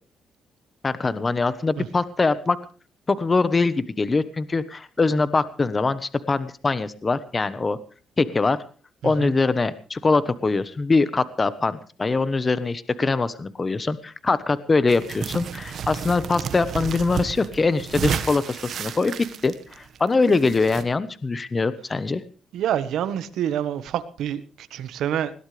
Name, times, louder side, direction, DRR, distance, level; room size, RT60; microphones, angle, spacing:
voice 1, 0.8-2.6 3.1-7.8 8.2-8.6 9.0-19.1 19.4-22.2, left 3 dB, 30° left, 14 dB, 1.1 m, -23 dB
voice 2, 9.0-9.3 22.5-25.3, right 10 dB, 80° right, 12 dB, 1.4 m, -27 dB
sound 1, 14.9-20.8, right 7 dB, 65° right, 1.6 m, -32 dB
20.5 x 17.0 x 3.4 m, 0.38 s
cardioid pair, 90°, 0 cm